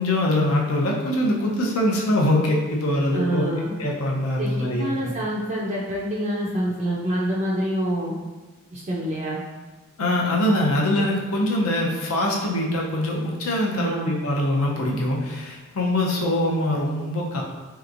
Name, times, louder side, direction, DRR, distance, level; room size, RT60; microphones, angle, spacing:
voice 1, 0.0-3.5 3.8-5.1 10.0-17.4, left 1 dB, 75° left, -1 dB, 0.6 m, -23 dB
voice 2, 3.1-3.7 4.4-8.1 8.7-9.4 13.7-14.1, right 1 dB, 30° right, -6 dB, 0.3 m, -26 dB
3.4 x 2.9 x 2.5 m, 1.2 s
head